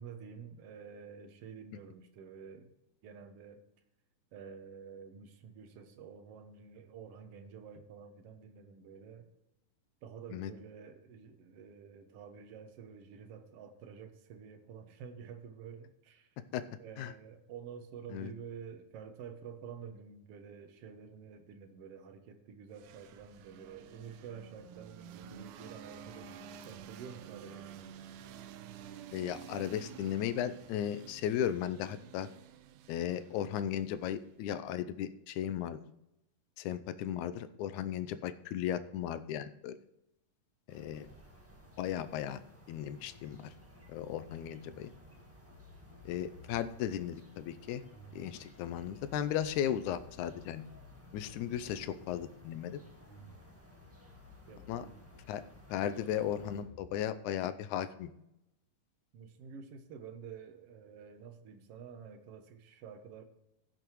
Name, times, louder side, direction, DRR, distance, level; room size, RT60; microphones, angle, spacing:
voice 1, 0.0-2.7 3.0-3.6 4.3-9.3 10.0-16.3 16.8-27.7 54.5-55.0 59.1-63.2, right 6 dB, 60° right, 7 dB, 1.7 m, -49 dB
sound 1, 22.7-34.5, right 9 dB, 85° right, 2.2 m, -51 dB
voice 2, 29.1-32.3 32.9-35.8 36.6-39.8 40.7-41.1 41.8-42.4 42.7-43.5 43.9-44.9 46.1-47.8 48.1-50.7 51.1-52.8 54.7-54.9 55.3-55.4 55.7-58.1, left 10 dB, 80° left, 12 dB, 2.0 m, -36 dB
sound 2, 40.7-56.6, equal, 15° right, 0.5 m, -58 dB
sound 3, 43.1-56.8, left 3 dB, 50° left, 2.1 m, -57 dB
16.5 x 6.9 x 3.1 m, 0.87 s
omnidirectional pair, 3.6 m